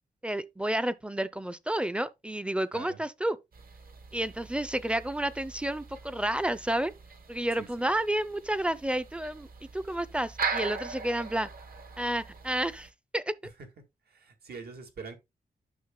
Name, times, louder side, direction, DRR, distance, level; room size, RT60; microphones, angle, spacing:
voice 1, 0.2-3.4 4.1-6.9 7.3-9.5 9.7-11.5 12.0-13.3, right 1 dB, 5° right, 0.4 m, -30 dB
sound 1, 3.5-12.9, right 4 dB, 65° right, 1.2 m, -40 dB
voice 2, 7.6-7.9 14.1-15.1, right 5 dB, 85° right, 1.8 m, -44 dB
9.5 x 6.4 x 2.2 m
wide cardioid pair, 160°, 16 cm